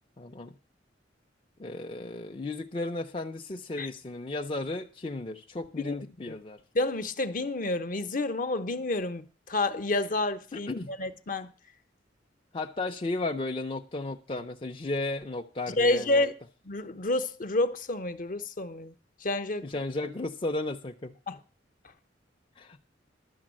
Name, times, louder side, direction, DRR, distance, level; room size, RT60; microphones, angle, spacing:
voice 1, 0.2-0.5 1.6-6.6 10.5-10.9 12.5-16.2 19.6-21.1 22.6-22.8, left 2 dB, 30° left, 0.6 m, -34 dB
voice 2, 6.7-11.5 15.8-16.3 16.6-18.9 19.2-19.7 21.3-21.4, left 2 dB, 50° left, 0.9 m, -29 dB
12.0 x 7.1 x 7.4 m
head